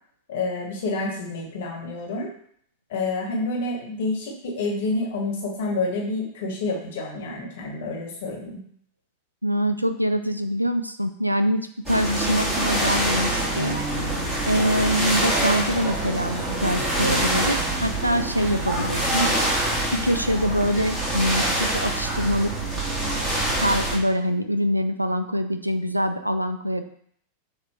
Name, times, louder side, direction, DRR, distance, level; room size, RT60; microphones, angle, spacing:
voice 1, 0.3-2.3 2.9-8.6, left 2 dB, 55° left, -1 dB, 1.2 m, -28 dB
voice 2, 9.4-13.8 14.5-19.3 19.9-22.5 23.6-26.8, equal, 90° right, 9 dB, 0.3 m, -24 dB
sound 1, 11.9-24.0, right 1 dB, 15° right, 1.4 m, -25 dB
6.5 x 2.5 x 3.0 m, 0.64 s
figure-of-eight pair, 90°, 0 cm